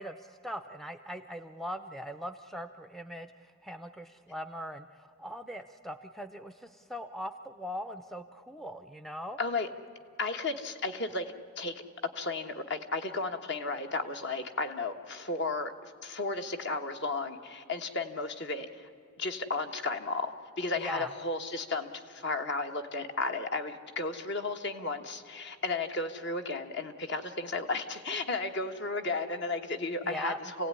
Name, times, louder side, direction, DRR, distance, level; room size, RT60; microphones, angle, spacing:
voice 1, 0.0-9.4 20.8-21.1 30.0-30.4, equal, ahead, 8 dB, 0.5 m, -40 dB
voice 2, 9.4-9.7 10.2-11.8 12.1-18.9 19.2-20.3 20.6-30.7, left 3 dB, 55° left, 6 dB, 1.4 m, -34 dB
28.0 x 17.0 x 9.8 m, 2.6 s
head